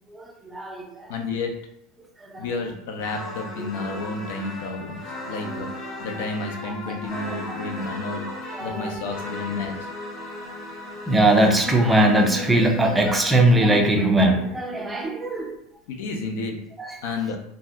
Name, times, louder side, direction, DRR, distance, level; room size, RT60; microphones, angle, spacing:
voice 1, 0.1-1.1 2.0-2.5 3.6-3.7 5.5-5.6 6.7-7.7 8.2-9.0 11.1-15.6 16.8-17.2, right 1 dB, 10° right, 2 dB, 0.4 m, -22 dB
voice 2, 1.1-1.5 2.4-5.7 6.0-8.3 8.6-9.8 15.9-16.6 17.0-17.4, left 3 dB, 70° left, 3 dB, 0.6 m, -31 dB
sound 1, 3.0-13.4, left 1 dB, 25° left, 0.8 m, -37 dB
2.7 x 2.1 x 3.4 m, 0.74 s
supercardioid pair, 155°, 0 cm